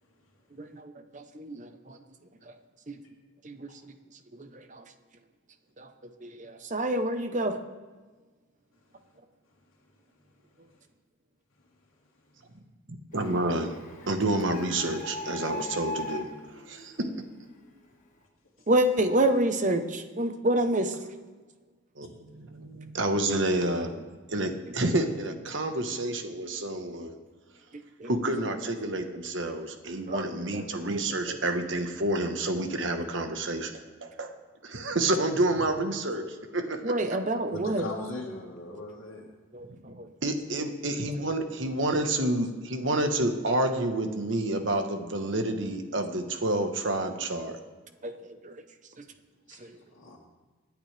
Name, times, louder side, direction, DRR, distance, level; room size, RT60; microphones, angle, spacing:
voice 1, 0.6-2.0 3.4-3.7 4.7-4.8 5.8-5.9 6.2-7.5 18.7-20.9 28.0-28.1 30.1-30.2 30.5-31.0 31.3-31.4 36.8-37.8 39.5-40.1 48.0-48.1 48.4-48.5, right 1 dB, 35° right, 7 dB, 0.9 m, -28 dB
Printer, 13.1-17.7, left 2 dB, 40° left, 1.5 m, -40 dB
voice 2, 13.1-13.8 14.1-16.3 16.7-17.1 22.0-24.0 24.3-27.2 28.0-34.3 34.6-37.0 39.8-47.6, right 1 dB, 65° right, 6 dB, 1.3 m, -29 dB
voice 3, 37.5-39.3 49.5-50.2, left 2 dB, 85° left, -4 dB, 1.9 m, -39 dB
26.0 x 9.6 x 3.4 m, 1.3 s
head